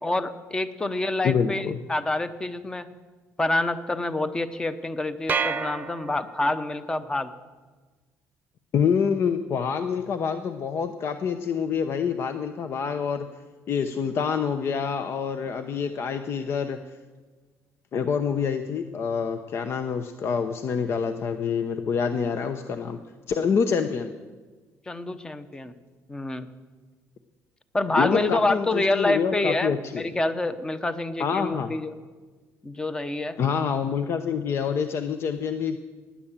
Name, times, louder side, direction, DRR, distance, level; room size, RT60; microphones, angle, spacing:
voice 1, 0.0-2.9 3.4-7.3 24.9-25.7 26.1-26.5 27.7-31.9 32.6-33.4, left 2 dB, 15° left, 11 dB, 0.9 m, -27 dB
voice 2, 1.2-1.8 8.7-13.3 13.7-16.8 17.9-23.0 23.3-24.1 27.9-30.1 31.2-31.7 33.4-35.8, left 6 dB, 45° left, 9 dB, 0.8 m, -26 dB
sound 1, 5.3-6.7, right 6 dB, 30° right, 0.8 m, -29 dB
17.5 x 10.0 x 7.3 m, 1.3 s
cardioid pair, 130°, 6 cm